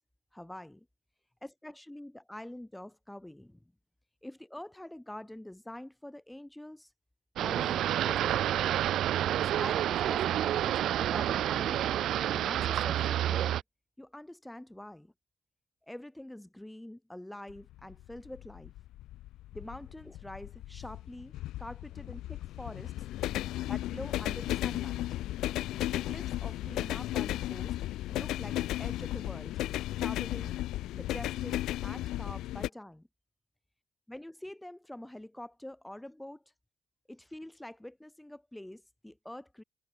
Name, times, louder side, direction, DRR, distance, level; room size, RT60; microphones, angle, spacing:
voice 1, 0.3-0.8 1.4-3.6 4.2-6.9 7.4-8.6 9.3-11.8 12.3-13.6 14.0-15.1 15.9-18.7 19.5-21.3 21.6-22.9 23.7-25.2 25.9-27.7 28.1-29.6 30.0-30.6 30.9-33.1 34.1-36.5 37.1-39.6, left 1 dB, 5° left, 1.5 m, -45 dB
sound 1, 7.4-13.6, right 12 dB, 75° right, 0.8 m, -29 dB
sound 2, 17.5-32.7, left 15 dB, 90° left, 0.5 m, -35 dB
cardioid pair, 90°, 0 cm